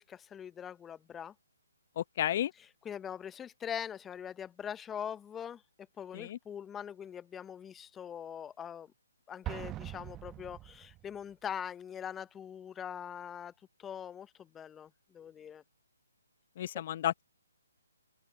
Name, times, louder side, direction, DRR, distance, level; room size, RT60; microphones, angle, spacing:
voice 1, 0.0-1.3 2.8-8.9 9.3-13.5 13.8-15.6, left 8 dB, 10° left, 0.7 m, -42 dB
voice 2, 2.0-2.5 6.1-6.4 16.6-17.2, left 11 dB, 40° left, 0.9 m, -32 dB
Explosion, 9.4-11.2, right 15 dB, 20° right, 1.1 m, -42 dB
open air
figure-of-eight pair, 140°, 0 cm